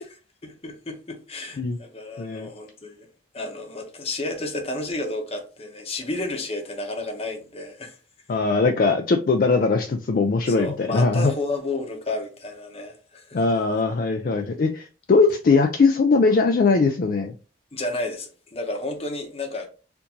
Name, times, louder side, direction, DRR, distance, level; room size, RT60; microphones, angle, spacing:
voice 1, 0.4-3.1 3.3-8.0 10.5-13.4 17.7-19.7, left 2 dB, 35° left, 0.8 m, -31 dB
voice 2, 2.2-2.5 8.3-11.3 13.3-17.3, left 4 dB, 50° left, 0.4 m, -20 dB
4.4 x 2.6 x 2.7 m
head